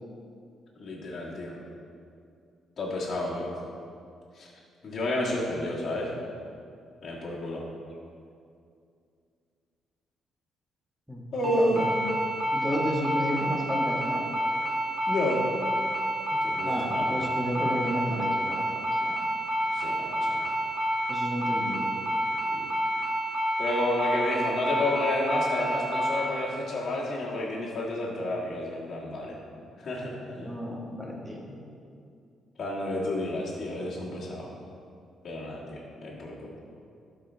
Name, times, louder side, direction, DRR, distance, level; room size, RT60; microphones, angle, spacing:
voice 1, 0.8-1.5 2.8-3.5 4.3-4.5 4.8-6.1 7.0-7.6 11.3-11.9 15.1-15.4 16.3-17.1 19.7-20.6 22.5-22.7 23.6-29.4 29.8-30.5 32.6-34.5 35.2-36.6, left 1 dB, 50° left, -7 dB, 1.7 m, -31 dB
voice 2, 11.1-12.0 12.5-14.3 16.6-19.2 21.1-21.9 30.4-31.6, equal, 5° right, -3 dB, 1.6 m, -32 dB
sound 1, 11.4-26.2, right 1 dB, 30° right, 1.8 m, -29 dB
12.0 x 4.6 x 3.4 m, 2.4 s
cardioid pair, 90°, 0 cm